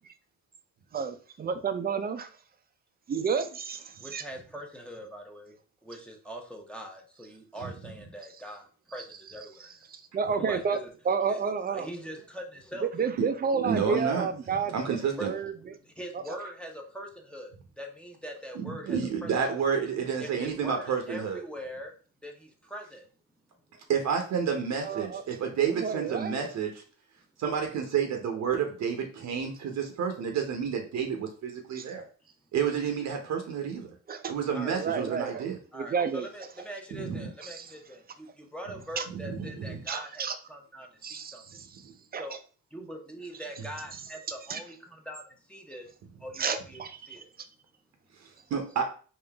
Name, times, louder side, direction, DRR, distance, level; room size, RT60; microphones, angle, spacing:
voice 1, 0.9-2.3 3.1-4.2 9.9-10.8 11.0-11.9 12.8-15.5 16.1-16.4 24.8-25.2 25.7-26.5 31.7-31.9 34.1-34.3 34.6-35.5 35.7-36.3 37.4-37.7 39.0-39.1 39.9-40.4 41.0-41.7 42.1-42.2 44.5-44.6 46.4-46.9, right 6 dB, 30° right, 10 dB, 0.5 m, -31 dB
voice 2, 4.0-5.5 5.8-8.7 8.9-9.7 10.4-10.9 11.3-11.4 11.7-12.9 15.2-15.3 15.8-19.3 20.2-21.9 22.2-23.0 34.5-34.8 35.7-41.4 42.2-42.4 42.7-45.2 45.5-45.9 46.2-46.8 47.1-47.3, equal, 5° left, 1 dB, 0.8 m, -42 dB
voice 3, 13.6-14.3 14.7-15.3 18.6-21.4 23.9-26.8 27.4-32.0 32.5-33.9 34.3-35.6 36.9-37.2 39.1-39.8 41.8-41.9 48.5-48.9, right 7 dB, 65° right, 4 dB, 0.8 m, -30 dB
3.8 x 2.5 x 3.4 m, 0.39 s
cardioid pair, 90°, 30 cm